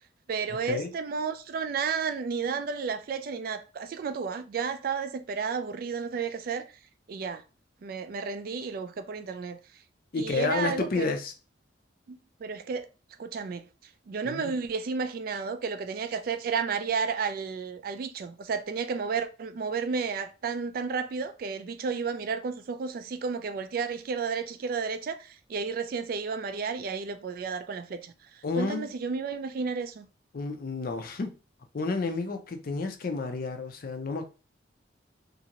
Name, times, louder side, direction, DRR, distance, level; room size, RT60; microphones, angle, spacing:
voice 1, 0.3-6.7 7.1-7.4 7.8-9.6 10.2-11.1 12.1-12.9 13.2-13.6 14.1-28.1 28.6-30.1, right 5 dB, 50° right, 0.3 m, -32 dB
voice 2, 10.1-11.3 14.2-14.5 28.4-28.9 30.3-31.4 31.7-34.3, left 3 dB, 50° left, 0.4 m, -30 dB
2.7 x 2.5 x 2.9 m
head